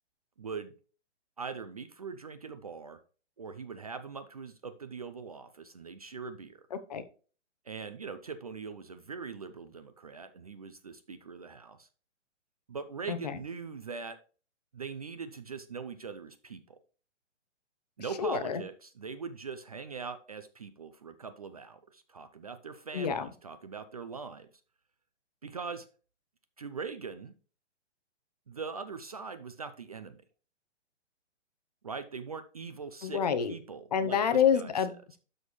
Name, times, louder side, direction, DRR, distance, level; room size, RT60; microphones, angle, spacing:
voice 1, 0.4-0.7 1.4-3.0 3.4-6.6 7.7-11.9 12.7-14.2 14.7-16.8 18.0-24.5 25.4-25.9 26.6-27.3 28.5-30.2 31.8-34.9, right 5 dB, 35° right, 11 dB, 0.4 m, -41 dB
voice 2, 6.7-7.0 13.1-13.2 18.2-18.6 22.9-23.3 33.0-33.5 33.9-35.2, left 7 dB, 35° left, 11 dB, 0.7 m, -28 dB
12.5 x 4.3 x 3.1 m, 0.38 s
hypercardioid pair, 165°, 35 cm